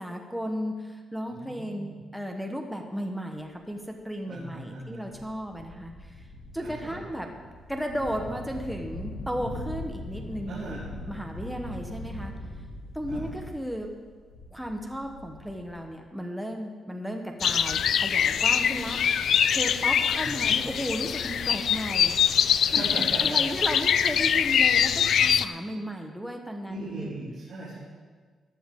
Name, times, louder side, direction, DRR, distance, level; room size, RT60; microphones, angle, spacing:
voice 1, 0.0-6.3 6.5-7.3 7.7-12.3 12.9-13.9 14.5-19.0 19.5-22.1 22.7-22.8 23.2-27.2, equal, ahead, 2 dB, 0.9 m, -34 dB
voice 2, 1.3-2.0 4.3-5.1 6.6-7.0 10.5-10.8 13.1-13.2 20.1-20.6 22.6-23.4 26.7-27.8, right 3 dB, 60° right, -10 dB, 3.3 m, -38 dB
sound 1, 3.6-3.7 4.4-4.5 4.9-15.9, left 1 dB, 85° left, 2.6 m, -41 dB
sound 2, 17.4-25.5, left 8 dB, 60° left, 0.3 m, -23 dB
15.0 x 11.0 x 3.7 m, 1.5 s
cardioid pair, 155°, 0 cm